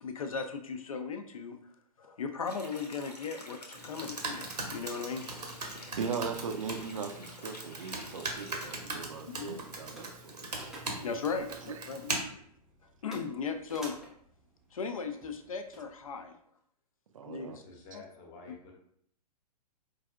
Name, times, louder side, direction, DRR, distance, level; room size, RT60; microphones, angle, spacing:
voice 1, 0.0-1.6 2.0-5.3 9.3-9.6 11.0-12.1 13.0-14.0 14.7-16.3 17.3-17.6 17.9-18.0 18.5-18.6, left 5 dB, 60° left, 7 dB, 0.4 m, -37 dB
sound 1, 2.4-8.7, left 1 dB, 75° left, 0.8 m, -49 dB
Computer keyboard, 3.7-12.2, right 2 dB, 75° right, 0.9 m, -40 dB
voice 2, 6.0-10.5 11.5-11.9 17.1-17.6, right 5 dB, 55° right, 6 dB, 0.5 m, -39 dB
sound 2, 8.2-16.3, right 1 dB, ahead, 0.5 m, -53 dB
voice 3, 17.5-18.7, left 3 dB, 25° left, 0 dB, 0.8 m, -50 dB
4.6 x 2.5 x 2.3 m, 0.66 s
figure-of-eight pair, 115°, 21 cm